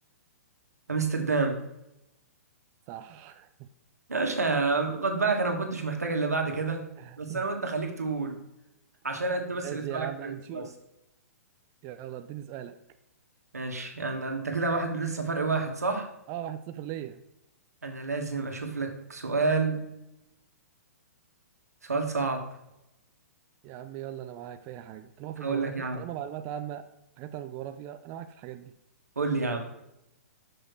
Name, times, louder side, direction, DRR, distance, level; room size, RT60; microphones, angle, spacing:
voice 1, 0.9-1.6 4.1-6.8 7.2-8.4 9.0-10.6 13.5-16.1 17.8-19.8 21.8-22.4 25.4-26.0 29.1-29.7, right 4 dB, 80° right, 3 dB, 1.6 m, -29 dB
voice 2, 2.9-3.7 7.0-7.5 9.1-10.7 11.8-12.8 16.3-17.2 23.6-26.9 27.2-28.7, right 11 dB, 30° right, 9 dB, 0.4 m, -39 dB
6.3 x 6.1 x 4.6 m, 0.87 s
figure-of-eight pair, 120°, 8 cm